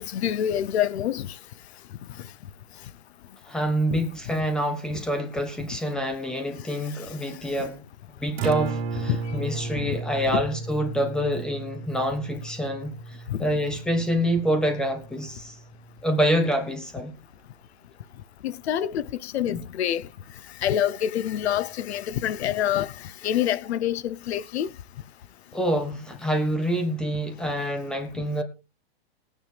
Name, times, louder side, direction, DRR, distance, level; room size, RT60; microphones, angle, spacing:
voice 1, 0.0-1.4 3.9-4.0 4.9-5.0 9.1-9.2 9.8-10.0 10.3-10.4 13.3-13.5 18.4-20.1 20.6-24.7, left 10 dB, 90° left, 0.8 m, -27 dB
voice 2, 3.5-7.8 8.2-15.6 16.0-17.1 19.5-19.6 25.5-28.4, equal, ahead, 1.3 m, -26 dB
Acoustic guitar, 8.2-16.4, right 4 dB, 75° right, 2.3 m, -35 dB
19.5 x 9.2 x 3.3 m
supercardioid pair, 170°, 31 cm